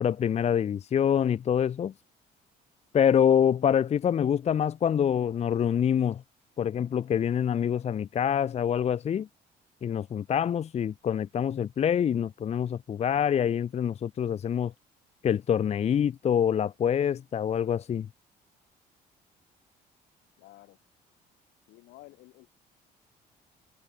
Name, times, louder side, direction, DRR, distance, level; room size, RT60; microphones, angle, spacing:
voice 1, 0.0-1.9 2.9-6.2 6.6-9.3 9.8-14.7 15.2-18.1, left 8 dB, 40° left, 0.8 m, -26 dB
voice 2, 20.4-20.8 21.7-22.5, left 19 dB, 85° left, 7.0 m, -52 dB
cardioid pair, 110°, 17 cm